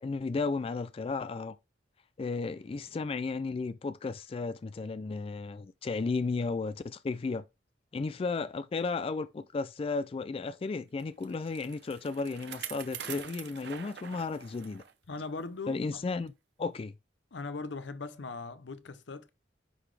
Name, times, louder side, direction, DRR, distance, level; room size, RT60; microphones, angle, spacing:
voice 1, 0.0-1.6 2.2-7.4 7.9-14.8 15.7-16.3 16.6-16.9, left 4 dB, 30° left, 0.3 m, -34 dB
Bicycle, 11.0-14.9 15.4-15.5 16.3-16.4, right 9 dB, 60° right, 0.7 m, -44 dB
voice 2, 15.1-16.0 17.3-19.3, left 3 dB, 75° left, 0.7 m, -39 dB
9.8 x 4.0 x 3.2 m
head